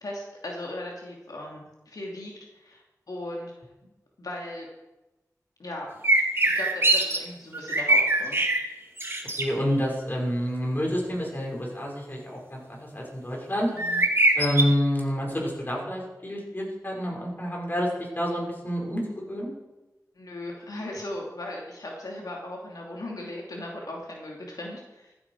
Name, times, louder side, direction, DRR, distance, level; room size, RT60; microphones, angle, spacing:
voice 1, 0.0-3.5 4.2-4.7 5.6-5.9 6.5-8.5 13.7-14.1 20.1-25.1, left 1 dB, 85° left, -1 dB, 2.7 m, -37 dB
sound 1, 6.0-7.2 7.5-8.6 9.0-9.4 13.8-14.6, right 2 dB, 40° right, 2.4 m, -22 dB
voice 2, 9.4-12.2 12.5-13.7 14.4-17.9 18.2-19.5, equal, 30° left, -1 dB, 5.4 m, -28 dB
15.0 x 14.5 x 4.8 m, 1.0 s
wide cardioid pair, 55°, 6 cm